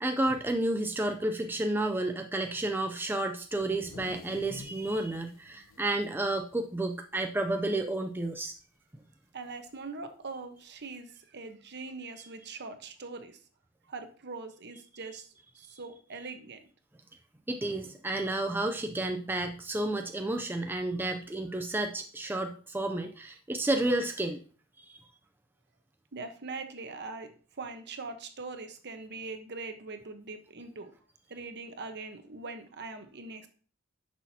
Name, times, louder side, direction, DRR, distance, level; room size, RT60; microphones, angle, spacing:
voice 1, 0.0-8.5 17.5-24.4 24.8-25.0, right 2 dB, 10° right, 5 dB, 0.4 m, -31 dB
sound 1, 3.5-7.2 7.6-7.7 8.1-8.5 9.7-9.8 10.8-10.9, left 3 dB, 70° left, 0.7 m, -50 dB
voice 2, 9.3-13.4 13.9-16.6 26.1-30.9 31.3-33.5, right 3 dB, 55° right, 7 dB, 1.0 m, -42 dB
10.0 x 6.1 x 2.8 m, 0.42 s
head